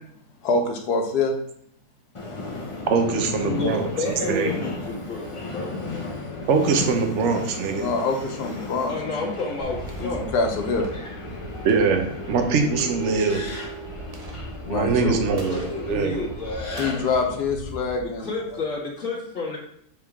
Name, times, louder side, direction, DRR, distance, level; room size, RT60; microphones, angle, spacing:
voice 1, 0.4-1.3 7.7-8.9 9.2-9.3 10.0-10.9 14.7-15.2 16.8-18.3, left 3 dB, 85° left, 3 dB, 1.5 m, -25 dB
Subway metro underground, 2.1-17.4, left 2 dB, 30° left, 0.6 m, -35 dB
voice 2, 2.9-4.5 6.5-7.9 11.6-13.4 14.7-15.6 15.9-16.2, right 4 dB, 55° right, 5 dB, 1.0 m, -22 dB
voice 3, 3.4-5.7 8.9-10.3 15.5-17.0 18.2-19.6, left 3 dB, 50° left, -4 dB, 2.0 m, -30 dB
sound 1, 9.6-18.7, right 1 dB, 35° right, 0.6 m, -39 dB
7.5 x 3.7 x 3.6 m, 0.68 s
omnidirectional pair, 1.6 m